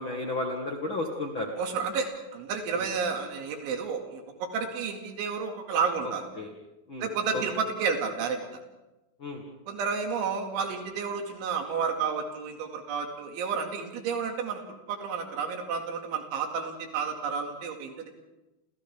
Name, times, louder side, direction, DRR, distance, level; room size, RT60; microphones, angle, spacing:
voice 1, 0.0-1.5 2.7-2.9 6.3-6.5 6.9-7.4 9.2-9.4, left 2 dB, 85° left, 1 dB, 1.1 m, -33 dB
voice 2, 1.6-6.3 7.0-8.6 9.7-14.6 14.9-18.1, right 5 dB, 70° right, 3 dB, 4.5 m, -31 dB
29.0 x 28.5 x 3.6 m, 1.0 s
omnidirectional pair, 5.8 m